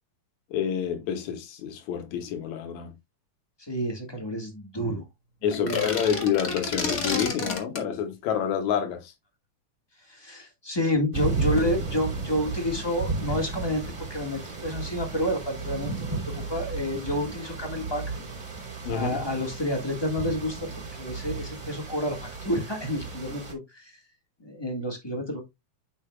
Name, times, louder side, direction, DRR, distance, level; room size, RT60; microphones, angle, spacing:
voice 1, 0.5-2.9 5.4-9.1 18.8-19.2, left 8 dB, 80° left, 2.4 m, -28 dB
voice 2, 3.6-5.0 5.6-6.0 10.1-13.8 14.1-18.1 18.9-20.7 21.0-24.0 24.4-25.4, equal, 15° left, 0.8 m, -29 dB
sound 1, 5.5-7.9, left 3 dB, 35° left, 1.5 m, -30 dB
sound 2, 11.1-23.5, right 3 dB, 30° right, 3.0 m, -33 dB
8.6 x 5.7 x 2.3 m
omnidirectional pair, 3.3 m